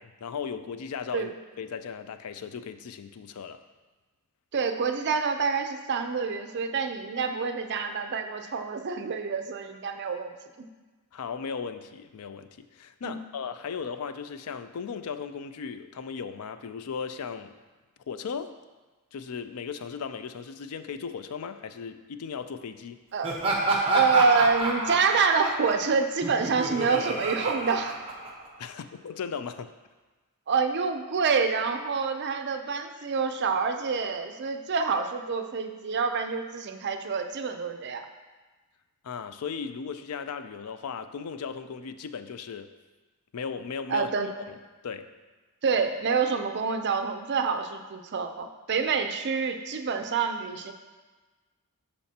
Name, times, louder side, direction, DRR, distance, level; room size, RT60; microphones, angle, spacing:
voice 1, 0.0-1.3 1.6-3.6 11.1-17.5 18.1-18.6 19.1-23.0 28.6-29.7 39.0-42.7 43.3-44.1 44.5-44.6 44.8-45.1, left 6 dB, 85° left, 10 dB, 0.4 m, -36 dB
voice 2, 4.5-10.7 13.0-13.2 23.1-23.3 23.9-27.9 30.5-38.1 43.9-44.3 45.6-50.7, right 5 dB, 50° right, 7 dB, 0.5 m, -27 dB
Laughter, 23.2-28.7, right 2 dB, 25° right, 1.0 m, -29 dB
12.0 x 4.3 x 2.8 m, 1.3 s
head